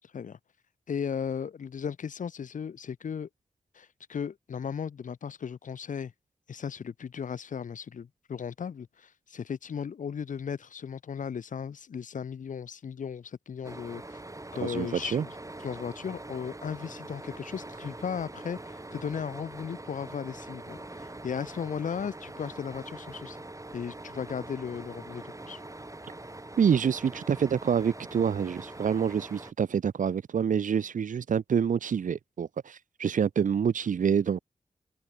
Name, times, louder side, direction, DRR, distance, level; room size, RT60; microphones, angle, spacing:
voice 1, 0.0-0.4 0.9-3.3 3.7-6.1 6.5-14.2 14.5-15.3 15.6-23.4 23.7-25.6, left 7 dB, 80° left, 2.0 m, -36 dB
sound 1, 13.6-29.5, right 2 dB, 25° right, 5.2 m, -43 dB
voice 2, 14.6-15.3 26.6-34.4, right 7 dB, 85° right, 1.9 m, -27 dB
cardioid pair, 45°, 13 cm